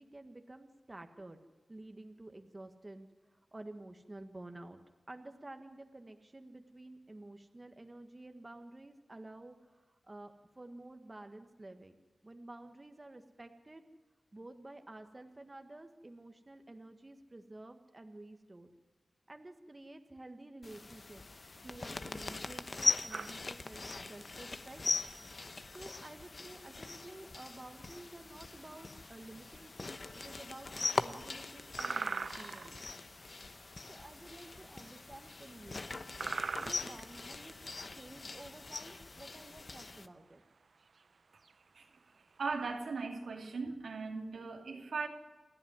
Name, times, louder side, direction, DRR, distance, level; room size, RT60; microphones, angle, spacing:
voice 1, 0.0-1.4 1.7-4.8 5.1-12.0 12.2-13.8 14.3-18.7 19.3-21.2 21.6-24.8 25.7-30.0 30.2-33.0 33.9-35.9 36.6-37.6 37.9-40.4, right 2 dB, 25° right, 1.5 m, -51 dB
sound 1, 20.6-40.1, left 3 dB, 40° left, 1.0 m, -41 dB
sound 2, 23.1-43.0, right 4 dB, 60° right, 0.7 m, -45 dB
voice 2, 42.4-45.1, right 4 dB, 85° right, 2.5 m, -38 dB
29.0 x 11.0 x 9.6 m
wide cardioid pair, 95°, 0 cm